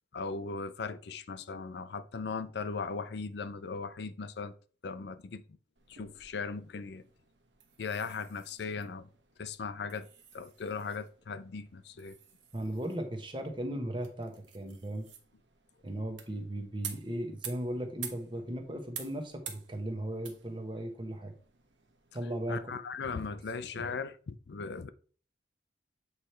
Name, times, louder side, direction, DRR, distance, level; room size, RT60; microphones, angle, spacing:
voice 1, 0.1-4.5 4.8-5.4 5.9-7.0 7.8-9.1 9.4-10.1 10.3-12.2 22.5-24.9, left 4 dB, 65° left, 0.4 m, -38 dB
sound 1, 5.8-22.6, right 8 dB, 85° right, 1.1 m, -50 dB
voice 2, 12.5-15.1 15.8-21.3 22.1-22.8 23.1-23.2 23.7-23.9, right 1 dB, 25° right, 1.0 m, -37 dB
8.3 x 3.3 x 4.3 m
head